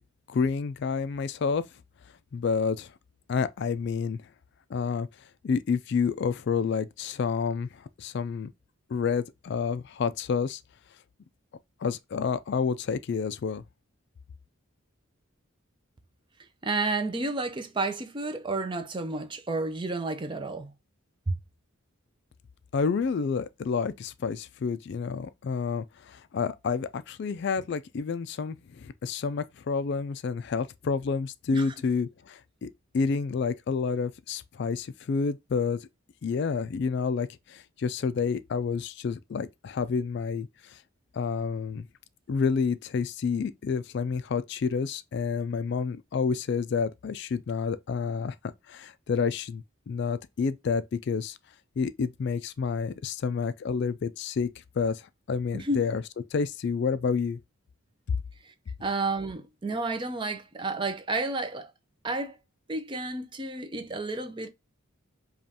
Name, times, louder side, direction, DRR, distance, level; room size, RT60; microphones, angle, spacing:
voice 1, 0.3-1.6 2.3-2.9 3.3-4.2 4.7-5.1 5.4-8.5 8.9-10.6 11.8-13.6 22.7-35.9 36.2-40.8 41.1-41.9 42.3-48.4 48.7-51.4 51.8-54.5 54.8-55.0 55.3-56.0 56.3-57.4, left 5 dB, 50° left, 0.3 m, -29 dB
voice 2, 16.6-20.7 21.3-21.4 31.5-31.7 55.5-55.8 58.4-58.5 58.8-61.7 62.0-62.4 62.7-64.5, right 3 dB, 20° right, 0.4 m, -31 dB
5.2 x 2.4 x 2.8 m
head